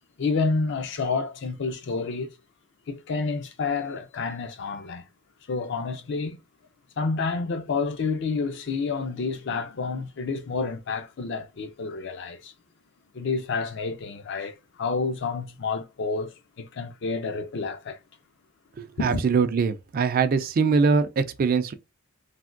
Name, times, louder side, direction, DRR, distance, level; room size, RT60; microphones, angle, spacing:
voice 1, 0.2-2.3 2.9-5.0 5.5-6.4 7.0-12.5 13.1-16.3 16.6-18.0 19.0-19.2, left 4 dB, 55° left, 0.4 m, -29 dB
voice 2, 18.8-21.7, right 5 dB, 45° right, 0.3 m, -22 dB
3.3 x 2.1 x 2.4 m
head